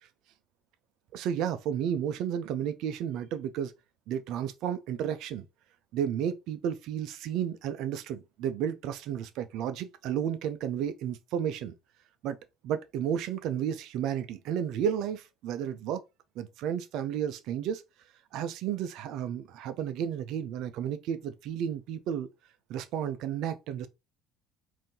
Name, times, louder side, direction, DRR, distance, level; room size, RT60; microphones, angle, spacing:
voice 1, 1.1-3.7 4.1-5.5 5.9-11.7 12.2-12.4 12.6-16.0 16.4-17.8 18.3-22.3 22.7-23.9, right 9 dB, 65° right, 0.5 m, -32 dB
3.6 x 2.7 x 2.8 m
supercardioid pair, 80°, 0 cm